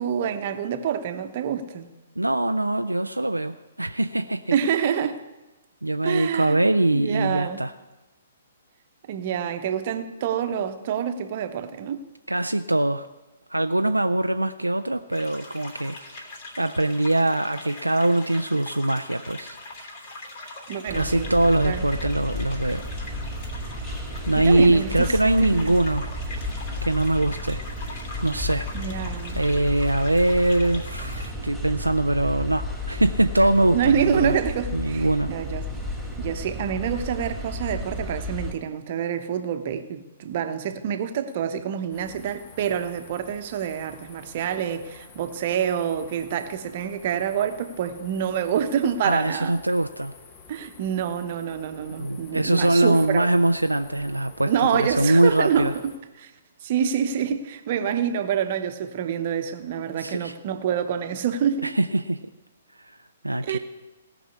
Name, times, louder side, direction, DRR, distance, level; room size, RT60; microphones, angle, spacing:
voice 1, 0.0-1.9 4.5-5.2 6.0-6.6 6.9-7.6 9.1-12.0 20.7-21.3 21.6-21.8 24.4-25.1 25.4-25.8 28.7-29.4 33.7-35.7 36.2-49.5 50.5-53.3 54.4-56.3 56.6-61.7 63.4-63.6, right 8 dB, 40° right, 1.0 m, -27 dB
voice 2, 2.2-4.5 5.8-7.7 12.3-13.1 13.5-19.6 20.9-22.8 24.3-26.1 26.8-27.6 28.2-28.9 29.3-34.4 34.7-35.3 49.0-50.1 52.0-55.7 60.0-60.3 61.6-62.2 63.2-63.6, right 1 dB, 85° right, 0.4 m, -22 dB
sound 1, 15.1-31.3, left 2 dB, 45° left, 3.1 m, -42 dB
sound 2, 20.9-38.5, left 1 dB, 5° left, 3.0 m, -33 dB
sound 3, 41.9-56.0, left 5 dB, 30° left, 1.4 m, -49 dB
17.5 x 6.1 x 8.3 m
figure-of-eight pair, 120°, 0 cm